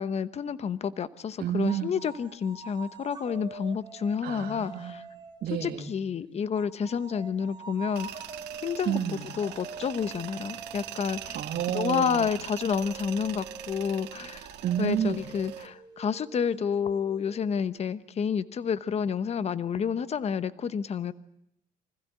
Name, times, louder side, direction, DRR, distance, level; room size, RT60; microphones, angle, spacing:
voice 1, 0.0-5.0 5.6-8.1 8.6-9.0 9.4-11.4 11.7-14.5 14.8-21.1, left 7 dB, 40° left, 14 dB, 1.0 m, -29 dB
voice 2, 1.4-1.9 4.2-5.0 5.4-5.9 8.8-9.3 11.3-12.3 14.6-15.2, right 10 dB, 55° right, 1 dB, 2.3 m, -30 dB
sound 1, 1.7-5.6 6.5-17.9, right 4 dB, 25° right, 4.5 m, -45 dB
Tools, 8.0-15.7, right 13 dB, 85° right, 2.1 m, -42 dB
25.0 x 15.5 x 8.2 m, 0.78 s
cardioid pair, 110°, 17 cm